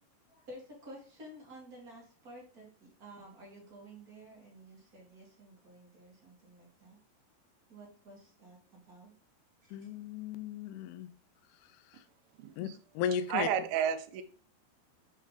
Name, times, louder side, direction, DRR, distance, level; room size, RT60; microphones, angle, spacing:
voice 1, 0.3-7.0 7.7-9.1 9.6-9.8, right 1 dB, 45° right, -4 dB, 1.1 m, -52 dB
voice 2, 9.7-11.1 12.6-12.7 13.0-13.5, left 8 dB, 80° left, 11 dB, 2.3 m, -35 dB
voice 3, 12.4-12.8 13.3-14.2, right 9 dB, 80° right, 8 dB, 2.1 m, -32 dB
7.4 x 3.8 x 3.9 m, 0.42 s
omnidirectional pair, 4.9 m